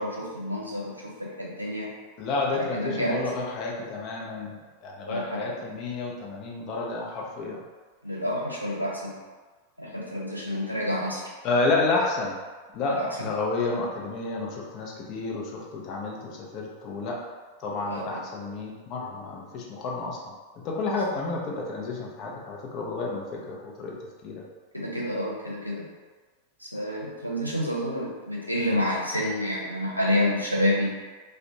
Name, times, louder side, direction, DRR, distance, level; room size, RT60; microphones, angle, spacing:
voice 1, 0.0-1.9 2.5-3.1 5.1-5.4 8.0-9.1 9.8-11.2 12.9-13.3 17.9-18.2 24.7-25.9 26.7-30.9, left 1 dB, 90° right, -5 dB, 0.5 m, -29 dB
voice 2, 2.2-7.6 11.4-12.4 12.7-17.2 17.6-20.3 20.6-24.4, left 3 dB, 40° left, -2 dB, 0.5 m, -30 dB
2.5 x 2.0 x 2.8 m, 1.3 s
figure-of-eight pair, 90°, 0 cm